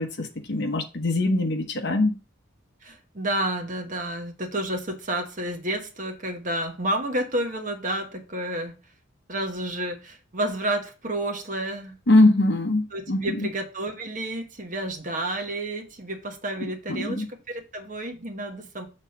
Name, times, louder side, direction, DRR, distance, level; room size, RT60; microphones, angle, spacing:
voice 1, 0.0-2.1 12.1-13.5 16.6-17.3, left 2 dB, 55° left, 1.0 m, -22 dB
voice 2, 2.8-8.7 9.3-12.0 12.9-18.9, right 1 dB, 35° right, 1.2 m, -30 dB
6.5 x 3.7 x 5.7 m
head